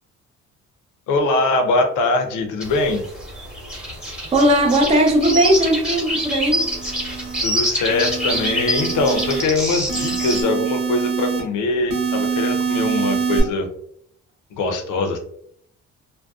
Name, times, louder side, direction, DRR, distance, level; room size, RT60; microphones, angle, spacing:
voice 1, 1.1-3.0 7.4-13.7 14.5-15.2, left 2 dB, 85° left, 5 dB, 0.6 m, -22 dB
sound 1, 2.6-10.4, equal, 5° right, 0.9 m, -26 dB
voice 2, 4.3-6.7, right 1 dB, 20° right, 2 dB, 0.5 m, -17 dB
sound 2, 6.3-7.4 7.9-9.4 9.9-11.4 11.9-13.4, right 5 dB, 65° right, 0.9 m, -25 dB
2.6 x 2.0 x 2.3 m, 0.66 s
cardioid pair, 90°, 30 cm